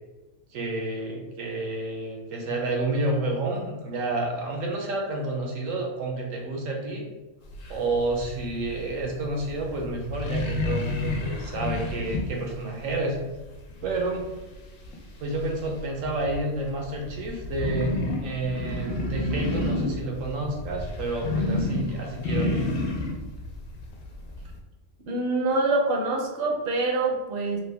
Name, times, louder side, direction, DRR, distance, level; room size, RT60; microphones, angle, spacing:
voice 1, 0.5-7.1 7.7-13.2 13.8-14.2 15.2-17.9 18.2-22.7, right 2 dB, 80° right, 1 dB, 1.1 m, -30 dB
sound 1, 7.5-24.6, left 2 dB, 80° left, 1.0 m, -31 dB
voice 2, 25.1-27.6, right 2 dB, 55° right, 1 dB, 0.7 m, -25 dB
3.3 x 2.2 x 3.3 m, 1.1 s
omnidirectional pair, 1.3 m